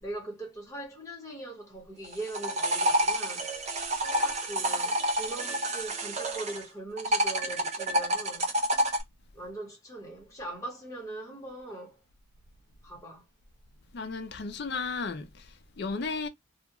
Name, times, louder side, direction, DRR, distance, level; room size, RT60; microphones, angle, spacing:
voice 1, 0.0-3.5 4.2-8.5 9.3-12.0 12.8-13.2, right 2 dB, 15° left, 1.1 m, -41 dB
sound 1, 2.0-6.6 7.0-9.0, right 1 dB, 30° right, 0.6 m, -28 dB
voice 2, 13.9-16.3, left 4 dB, 50° left, 0.4 m, -34 dB
2.4 x 2.3 x 2.8 m
head